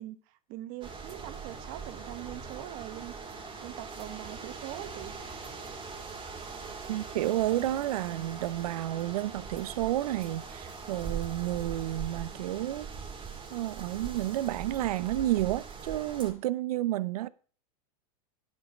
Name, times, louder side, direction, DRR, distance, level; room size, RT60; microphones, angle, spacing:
voice 1, 0.0-3.1 3.6-5.1, right 15 dB, 50° right, 0.9 m, -42 dB
sound 1, 0.8-16.3, right 5 dB, 25° right, 2.5 m, -41 dB
voice 2, 6.9-12.9 13.5-17.3, right 14 dB, 85° right, 0.5 m, -31 dB
10.5 x 5.2 x 6.5 m
supercardioid pair, 135°, 19 cm